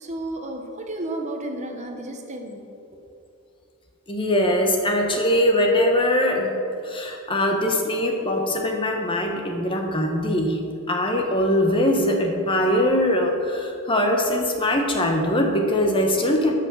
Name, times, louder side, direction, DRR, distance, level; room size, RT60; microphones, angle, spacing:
voice 1, 0.0-2.7, right 1 dB, 35° right, 3 dB, 1.0 m, -32 dB
voice 2, 4.1-6.5 6.8-10.6 10.9-16.5, left 1 dB, 25° left, 2 dB, 1.0 m, -22 dB
13.0 x 5.9 x 6.1 m, 2.6 s
head